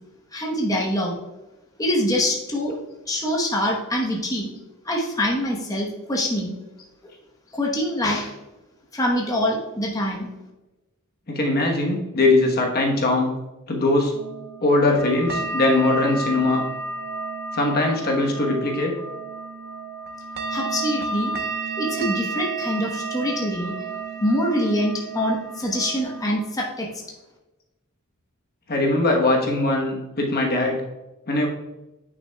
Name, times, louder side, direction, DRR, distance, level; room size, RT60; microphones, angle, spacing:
voice 1, 0.3-1.2 1.8-4.5 4.8-6.5 7.5-8.3 8.9-10.3 20.5-21.3 21.8-23.9 24.2-26.9, equal, 15° left, -2 dB, 1.0 m, -24 dB
voice 2, 11.3-13.3 13.7-14.1 14.6-16.6 17.5-18.9 28.7-30.8 31.3-31.5, left 2 dB, 45° left, 1 dB, 1.1 m, -21 dB
sound 1, 14.1-26.4, right 3 dB, 50° right, 0.9 m, -31 dB
9.3 x 6.1 x 2.3 m, 1.0 s
head